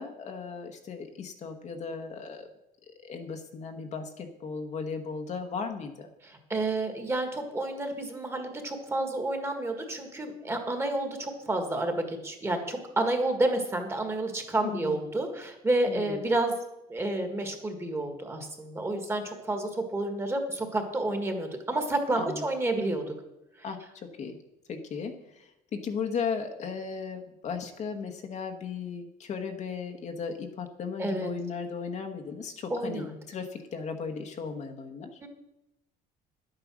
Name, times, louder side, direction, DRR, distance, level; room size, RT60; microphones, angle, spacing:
voice 1, 0.0-2.5 3.0-6.1 14.6-15.0 15.9-16.2 22.2-22.4 23.6-23.8 24.2-24.4 24.7-35.2, left 5 dB, 40° left, 5 dB, 1.2 m, -36 dB
voice 2, 6.2-16.5 16.9-23.0 31.0-31.3 32.7-33.1 35.2-35.3, right 2 dB, 15° right, 5 dB, 1.7 m, -30 dB
11.0 x 9.0 x 6.2 m, 0.89 s
cardioid pair, 150°, 17 cm